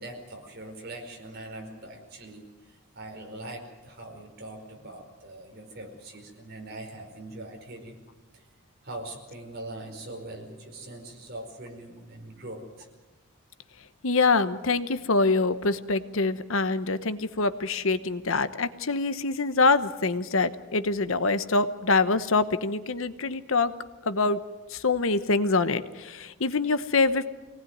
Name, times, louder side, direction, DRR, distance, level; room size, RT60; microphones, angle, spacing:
voice 1, 0.0-8.0 8.3-8.5 8.8-12.9, right 1 dB, 45° right, 1 dB, 4.9 m, -42 dB
voice 2, 14.0-23.7 24.1-24.4 24.7-27.3, left 3 dB, 65° left, 12 dB, 0.9 m, -25 dB
24.5 x 19.0 x 9.4 m, 1.2 s
head